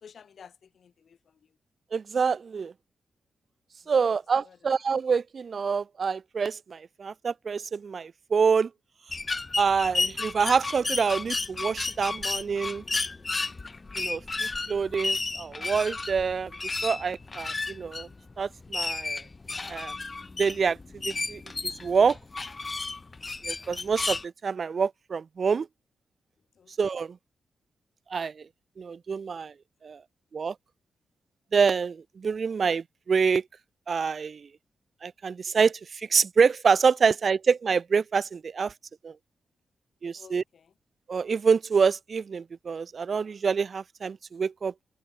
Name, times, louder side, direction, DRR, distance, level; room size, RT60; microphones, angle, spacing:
voice 1, 0.0-1.4 4.0-4.1 4.4-4.6 26.6-26.7 40.1-40.7, left 7 dB, 60° left, 1.6 m, -52 dB
voice 2, 1.9-2.7 3.9-8.7 9.6-12.8 14.0-16.5 16.8-18.1 18.4-19.2 19.7-19.9 20.4-20.8 21.0-22.2 23.5-25.7 26.8-27.2 28.1-28.3 28.8-29.5 29.8-30.0 30.3-30.5 31.5-33.4 33.9-34.5 35.0-38.7 39.0-39.1 40.0-40.4 41.1-44.7, right 5 dB, 45° right, 0.7 m, -26 dB
sound 1, 9.1-24.2, left 3 dB, 25° left, 0.6 m, -32 dB
wide cardioid pair, 130°, 0 cm